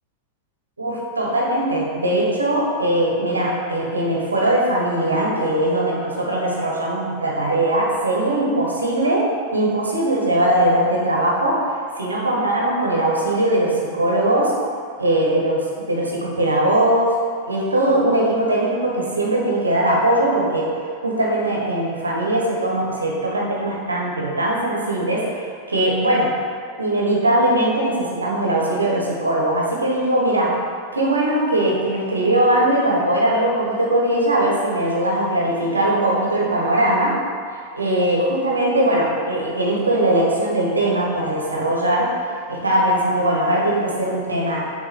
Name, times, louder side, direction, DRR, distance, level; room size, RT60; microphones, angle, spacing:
voice 1, 0.8-9.2 9.5-11.6 12.0-14.5 15.0-17.1 17.5-26.3 26.8-30.6 30.9-37.2 37.8-44.6, right 1 dB, 75° right, -3 dB, 1.3 m, -20 dB
6.8 x 3.4 x 6.0 m, 2.2 s
figure-of-eight pair, 90°, 0 cm